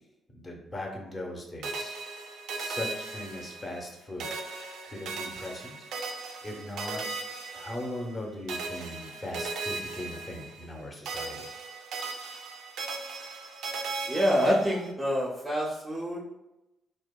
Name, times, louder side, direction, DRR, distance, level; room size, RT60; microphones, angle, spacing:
voice 1, 0.3-2.0 2.6-4.5 4.8-5.7 6.4-11.5, left 1 dB, 30° left, 0 dB, 0.7 m, -39 dB
sound 1, 1.6-3.9 4.2-8.2 8.5-10.8 11.1-14.9, right 3 dB, 85° right, 0.3 m, -37 dB
voice 2, 14.1-16.2, equal, 15° right, -4 dB, 0.5 m, -26 dB
2.7 x 2.0 x 2.2 m, 0.96 s
cardioid pair, 90°, 0 cm